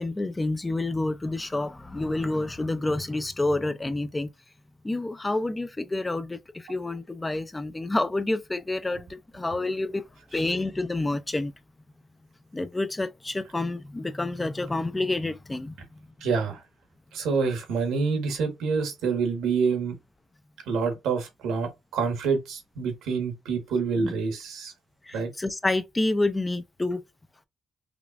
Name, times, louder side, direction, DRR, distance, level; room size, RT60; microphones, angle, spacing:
voice 1, 0.0-4.3 4.8-10.0 10.3-11.5 12.5-16.0 24.0-24.1 25.0-27.0, left 2 dB, 15° left, 0.4 m, -28 dB
voice 2, 16.2-16.6 17.1-19.9 20.7-24.7 25.1-25.3, right 5 dB, 85° right, 1.3 m, -27 dB
5.1 x 2.4 x 2.4 m
cardioid pair, 90°, 0 cm